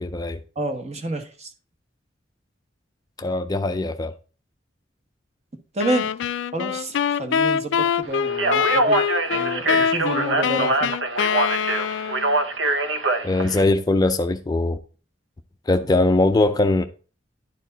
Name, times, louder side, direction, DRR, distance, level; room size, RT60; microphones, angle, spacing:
voice 1, 0.0-0.4 3.2-4.1 13.2-14.8 15.7-16.9, left 2 dB, 20° left, 0.4 m, -21 dB
voice 2, 0.6-1.5 5.7-6.1 6.5-9.0 9.3-10.9, right 1 dB, 35° right, 1.1 m, -29 dB
sound 1, 5.8-12.4, left 7 dB, 85° left, 0.4 m, -24 dB
Speech, 8.3-13.6, right 2 dB, 80° right, 0.9 m, -23 dB
11.0 x 4.7 x 3.9 m
head